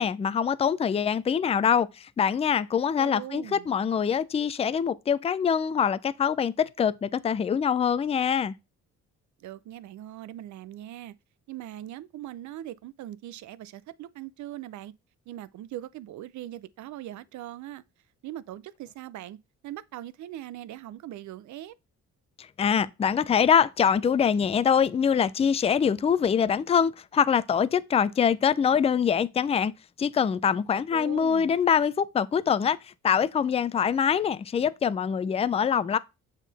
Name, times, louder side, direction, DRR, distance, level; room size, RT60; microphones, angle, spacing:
voice 1, 0.0-8.5 22.6-29.7 30.0-32.8 33.0-36.0, left 7 dB, 20° left, 0.3 m, -24 dB
voice 2, 3.0-3.7 9.4-11.1 11.5-14.9 15.3-17.8 18.2-21.7 30.7-31.6, right 13 dB, 70° right, 0.5 m, -41 dB
7.2 x 3.7 x 4.0 m
cardioid pair, 90°, 30 cm